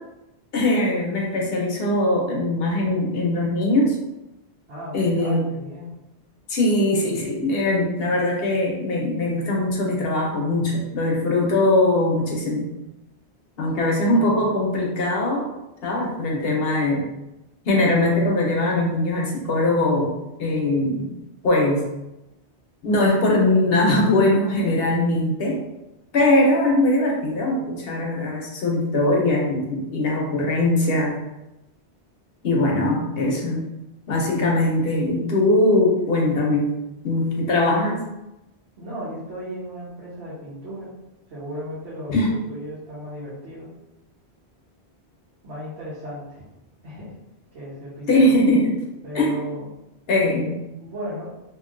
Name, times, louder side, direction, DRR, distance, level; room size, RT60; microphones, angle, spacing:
voice 1, 0.5-4.0 4.9-5.4 6.5-12.7 13.6-15.5 15.8-17.0 17.6-20.1 20.4-21.1 21.4-21.8 22.8-25.6 26.1-31.2 32.4-33.6 34.1-36.7 37.0-38.0 42.1-42.3 48.1-48.8 49.1-49.3 50.1-50.6, left 1 dB, 65° left, -1 dB, 0.9 m, -21 dB
voice 2, 4.7-6.0 13.7-13.8 14.1-14.5 32.6-32.8 38.8-40.9 41.3-43.7 45.4-46.4 46.8-47.1 47.5-48.3 49.0-49.7 50.8-51.3, equal, 90° right, -9 dB, 1.2 m, -36 dB
2.9 x 2.6 x 2.4 m, 0.93 s
omnidirectional pair, 1.1 m